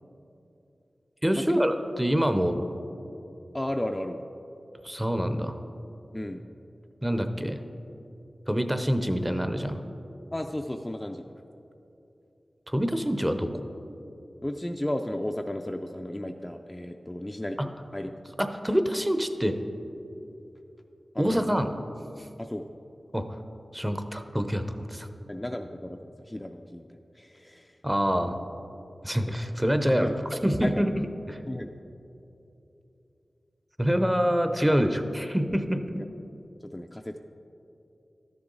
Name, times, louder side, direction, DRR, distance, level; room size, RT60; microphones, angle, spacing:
voice 1, 1.2-2.6 4.8-5.6 7.0-7.6 8.5-9.8 12.7-13.7 17.6-17.7 18.4-19.6 21.2-21.7 22.2-22.3 23.1-23.4 23.7-25.1 27.8-28.4 29.0-30.1 30.4-30.9 31.3-31.4 33.8-35.8, equal, 10° right, 7 dB, 0.7 m, -26 dB
voice 2, 3.5-4.2 6.1-6.4 10.3-11.2 14.4-18.1 21.1-21.4 22.4-22.6 25.3-27.8 30.0-30.2 30.6-30.8 31.5-31.7 36.6-37.2, left 1 dB, 20° left, 4 dB, 0.4 m, -34 dB
12.5 x 6.9 x 3.9 m, 2.9 s
cardioid pair, 50°, 0 cm